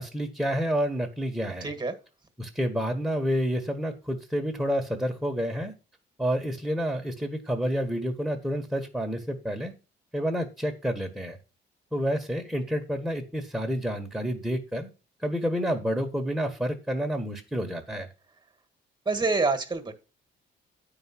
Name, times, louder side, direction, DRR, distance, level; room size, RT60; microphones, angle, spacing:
voice 1, 0.0-1.7 2.4-5.7 6.2-9.7 10.1-11.4 11.9-14.9 15.2-18.1, equal, 5° right, 3 dB, 1.5 m, -29 dB
voice 2, 1.6-1.9 19.0-19.9, right 3 dB, 20° right, 9 dB, 1.7 m, -26 dB
9.2 x 4.9 x 5.9 m, 0.32 s
cardioid pair, 90°, 20 cm